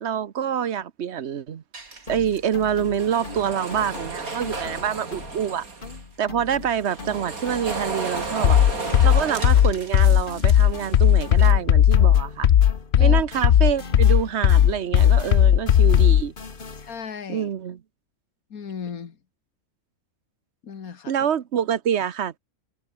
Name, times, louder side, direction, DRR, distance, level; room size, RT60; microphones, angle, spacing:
voice 1, 0.0-1.6 2.1-5.6 6.2-8.6 9.0-12.5 13.0-16.3 17.3-17.8 21.1-22.4, right 8 dB, 55° right, 1.1 m, -26 dB
sound 1, 1.7-6.0 6.5-11.5, right 3 dB, 75° right, 3.9 m, -34 dB
sound 2, 2.1-5.5 5.8-13.1 13.3-17.1, left 4 dB, 35° left, 1.9 m, -41 dB
sound 3, 8.4-16.3, left 10 dB, 55° left, 0.9 m, -16 dB
voice 2, 16.8-17.5 18.5-19.2 20.6-21.1, left 6 dB, 80° left, 2.1 m, -36 dB
omnidirectional pair, 1.5 m